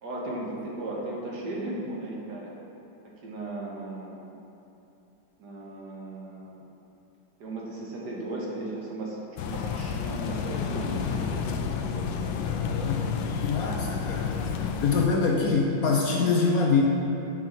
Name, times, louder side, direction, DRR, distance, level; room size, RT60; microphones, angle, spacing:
voice 1, 0.0-2.5 3.2-4.2 5.4-6.6 7.4-9.2 9.4-11.5 16.2-16.4, right 2 dB, 65° right, -3 dB, 1.8 m, -36 dB
sound 1, 9.4-15.1, left 6 dB, 90° left, 1.3 m, -30 dB
voice 2, 12.5-13.2 13.4-14.3 14.8-16.8, left 4 dB, 60° left, 0 dB, 1.0 m, -24 dB
9.9 x 5.9 x 4.5 m, 2.8 s
omnidirectional pair, 2.0 m